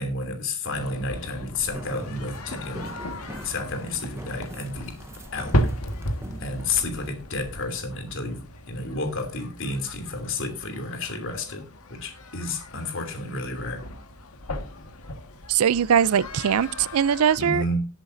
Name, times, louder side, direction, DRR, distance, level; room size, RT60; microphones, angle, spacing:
voice 1, 0.0-2.9 3.4-5.0 5.3-5.6 6.4-13.9 17.4-17.9, left 2 dB, 60° left, 2.9 m, -31 dB
sound 1, 0.7-17.4, equal, 85° left, 1.7 m, -35 dB
sound 2, 1.7-7.1, right 1 dB, 10° right, 0.8 m, -42 dB
voice 2, 15.5-17.6, right 8 dB, 80° right, 0.4 m, -21 dB
18.5 x 8.0 x 2.6 m
head